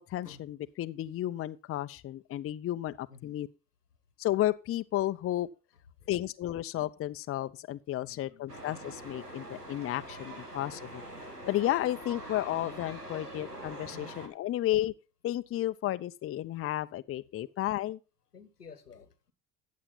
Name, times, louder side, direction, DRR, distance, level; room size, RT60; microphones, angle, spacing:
voice 1, 0.0-3.5 4.2-5.5 6.1-11.0 11.5-14.9 15.2-18.0, left 14 dB, 30° left, 0.6 m, -32 dB
voice 2, 8.0-8.5 13.1-13.3 13.9-14.1 18.3-19.3, left 5 dB, 85° left, 1.2 m, -51 dB
sound 1, 8.5-14.3, right 1 dB, 90° right, 1.6 m, -44 dB
14.5 x 8.4 x 4.1 m
figure-of-eight pair, 55°, 46 cm